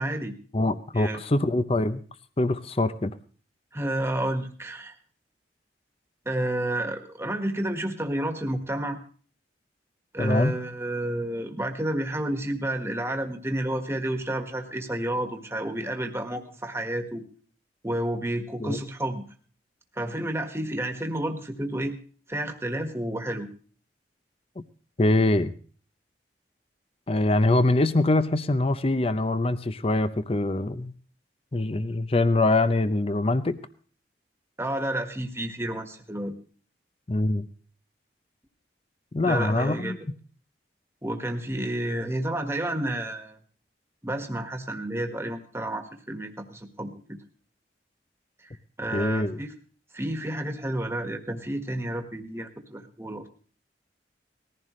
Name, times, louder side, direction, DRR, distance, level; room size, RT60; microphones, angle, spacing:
voice 1, 0.0-0.3 0.9-1.2 3.7-4.9 6.2-9.0 10.1-17.2 17.8-19.2 19.9-22.0 22.3-23.5 34.6-36.3 39.2-40.0 41.0-43.4 44.0-46.9 48.4-48.5 48.8-49.5 49.9-53.3, right 1 dB, 15° right, 5 dB, 1.6 m, -30 dB
voice 2, 0.5-2.0 2.4-3.1 10.2-10.6 18.6-18.8 25.0-25.5 27.1-30.9 31.5-33.6 37.1-37.5 39.1-40.0 48.9-49.4, left 2 dB, 30° left, 13 dB, 0.6 m, -24 dB
19.5 x 15.0 x 3.2 m, 0.41 s
head